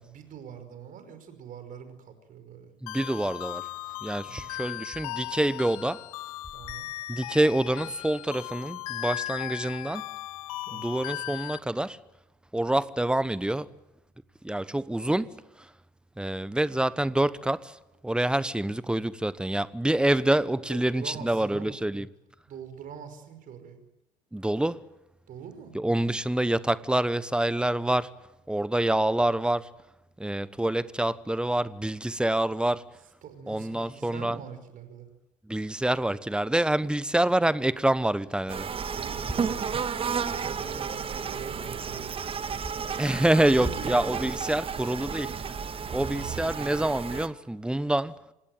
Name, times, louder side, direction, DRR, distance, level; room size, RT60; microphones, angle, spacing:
voice 1, 0.0-2.7 4.3-4.7 6.5-6.9 10.5-10.9 20.6-21.8 22.5-23.8 25.2-25.7 32.9-35.1 37.2-37.5 38.8-39.9 40.4-43.0 43.6-44.2 45.9-46.4, right 7 dB, 45° right, 5.3 m, -44 dB
voice 2, 2.8-3.7 4.0-6.1 7.1-10.1 10.7-12.0 12.5-13.7 14.4-15.7 16.2-22.1 24.3-24.8 25.7-28.1 28.5-29.7 30.2-32.9 33.5-34.4 35.4-38.7 43.0-45.4 45.9-48.2, right 1 dB, 5° right, 1.1 m, -27 dB
sound 1, 2.9-11.6, left 18 dB, 65° left, 0.9 m, -37 dB
sound 2, 38.5-47.3, right 6 dB, 30° right, 1.6 m, -32 dB
27.0 x 19.0 x 9.1 m
figure-of-eight pair, 60°, 19 cm